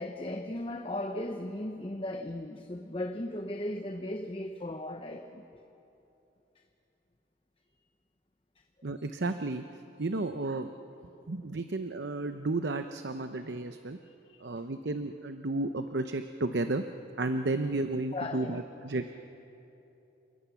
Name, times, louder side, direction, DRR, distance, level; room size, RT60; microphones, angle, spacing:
voice 1, 0.0-5.4 8.5-9.0 14.0-14.5 18.1-18.6, left 1 dB, 30° left, 5 dB, 0.8 m, -37 dB
voice 2, 8.8-9.6 10.0-10.7 11.3-14.0 14.4-16.8 17.2-19.1, right 2 dB, 70° right, 8 dB, 0.8 m, -32 dB
29.0 x 19.0 x 7.1 m, 2.9 s
head